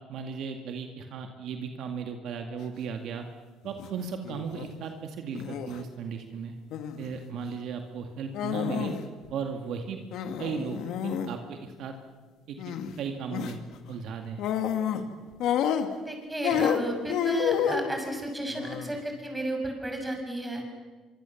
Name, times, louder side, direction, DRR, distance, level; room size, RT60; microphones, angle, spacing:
voice 1, 0.1-3.3 3.6-6.5 7.0-8.9 9.3-10.0 10.4-11.9 12.5-14.4, right 6 dB, 65° right, 5 dB, 2.1 m, -36 dB
sound 1, 3.6-3.9 4.2-4.7 5.3-5.8 6.7-7.1 8.3-9.1 9.3-9.4 10.1-11.3 12.6-13.0 13.3-13.6 14.4-15.1 15.4-16.1 16.4-17.9 18.5-19.0, left 8 dB, 70° left, 2.1 m, -29 dB
voice 2, 16.0-20.6, right 1 dB, 10° right, 3 dB, 6.3 m, -33 dB
24.5 x 24.5 x 7.3 m, 1.3 s
cardioid pair, 105°, 0 cm